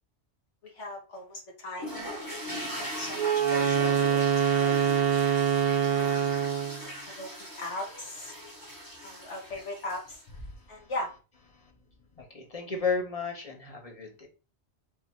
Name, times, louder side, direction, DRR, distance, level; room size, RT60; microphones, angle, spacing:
voice 1, 0.6-4.8 5.9-6.4 7.0-8.3 9.0-10.2 10.7-11.1, left 1 dB, 85° left, -2 dB, 1.6 m, -39 dB
sound 1, 1.8-10.3, equal, 20° left, 1.2 m, -39 dB
Wind instrument woodwind instrument, 3.1-6.8, right 8 dB, 55° right, 0.5 m, -25 dB
voice 2, 10.5-10.9 11.5-11.7 12.2-14.3, left 5 dB, 35° left, 2 dB, 0.9 m, -34 dB
3.6 x 2.7 x 4.3 m, 0.33 s
omnidirectional pair, 1.2 m